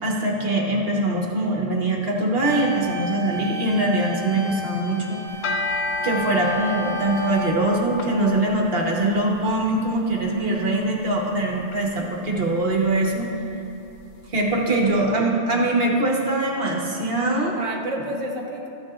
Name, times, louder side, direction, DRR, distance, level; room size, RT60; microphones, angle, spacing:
voice 1, 0.0-5.2 6.0-13.3 14.3-17.6, right 2 dB, 60° right, -1 dB, 1.4 m, -22 dB
sound 1, 2.4-7.5, right 1 dB, 5° left, 2.2 m, -35 dB
sound 2, 5.3-14.6, left 2 dB, 70° left, 0.9 m, -33 dB
voice 2, 14.5-16.0 16.7-16.9 17.5-18.7, right 2 dB, 35° right, 0 dB, 0.7 m, -32 dB
14.0 x 9.7 x 2.4 m, 2.7 s
omnidirectional pair, 1.2 m